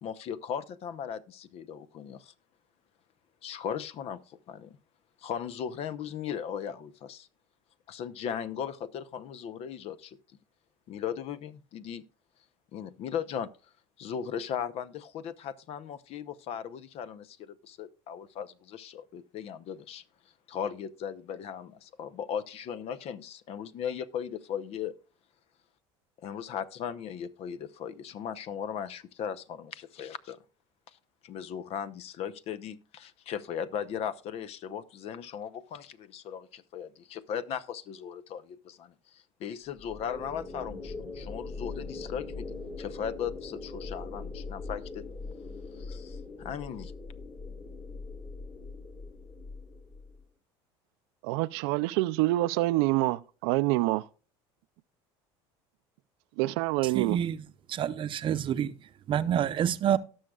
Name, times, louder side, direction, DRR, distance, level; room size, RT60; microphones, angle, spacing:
voice 1, 0.0-2.3 3.4-4.8 5.2-7.3 7.9-10.2 10.9-12.0 12.7-13.5 14.0-20.0 20.5-24.9 26.2-30.4 31.2-45.1 45.9-46.9, left 8 dB, 55° left, 0.8 m, -37 dB
sound 1, 39.8-50.2, left 3 dB, 30° left, 3.2 m, -41 dB
voice 2, 51.2-54.1 56.4-57.2, right 18 dB, 80° right, 0.5 m, -26 dB
voice 3, 56.9-57.4 57.7-58.7 59.1-60.0, right 9 dB, 40° right, 0.7 m, -27 dB
18.0 x 6.4 x 2.4 m
supercardioid pair, 110°, 13 cm